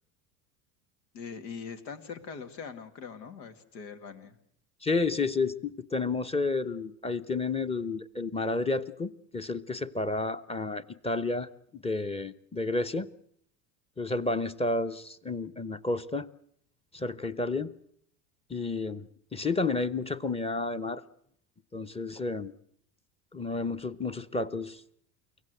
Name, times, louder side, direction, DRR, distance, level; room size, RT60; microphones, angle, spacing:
voice 1, 1.1-4.4, left 6 dB, 85° left, 9 dB, 2.4 m, -42 dB
voice 2, 4.8-13.1 14.0-16.3 16.9-17.7 18.5-21.0 21.7-22.5 23.3-24.8, left 3 dB, 10° left, 12 dB, 0.9 m, -31 dB
24.0 x 17.0 x 7.9 m, 0.67 s
supercardioid pair, 95°, 49 cm